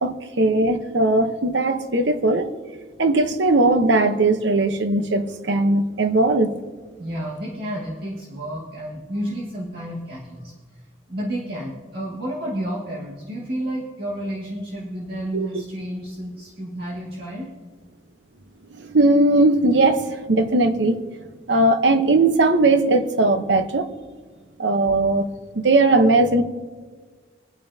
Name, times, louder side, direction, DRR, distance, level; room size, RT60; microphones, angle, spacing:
voice 1, 0.0-2.5 3.0-6.6 15.3-15.5 18.8-21.0 21.5-23.9 24.6-25.3 25.5-26.4, right 2 dB, 70° right, 8 dB, 0.9 m, -19 dB
voice 2, 7.0-17.5, right 1 dB, 55° right, -5 dB, 2.0 m, -31 dB
24.5 x 9.0 x 2.8 m, 1.5 s
head